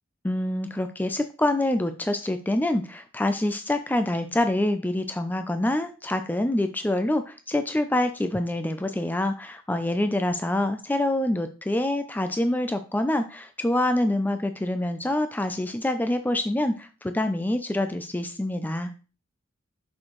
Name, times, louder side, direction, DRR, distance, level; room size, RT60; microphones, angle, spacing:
voice 1, 0.2-18.9, left 1 dB, 10° left, 8 dB, 0.4 m, -26 dB
6.3 x 6.1 x 3.1 m, 0.34 s
head